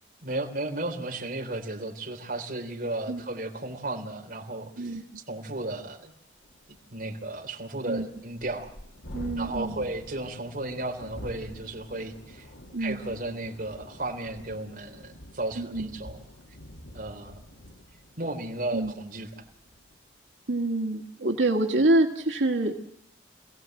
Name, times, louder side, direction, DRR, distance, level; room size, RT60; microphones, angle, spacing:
voice 1, 0.2-5.0 5.3-6.1 6.7-8.7 9.4-12.5 12.8-16.2 16.9-17.4 18.2-19.4, right 2 dB, 50° right, 1 dB, 3.6 m, -34 dB
Thunderstorm, 6.0-6.1 6.4-20.0, equal, 85° left, 2.4 m, -47 dB
voice 2, 9.1-9.8 12.7-13.0 15.6-15.9 18.7-18.9 20.5-22.7, right 2 dB, 80° right, 0 dB, 2.0 m, -26 dB
27.0 x 17.0 x 7.8 m, 0.72 s
head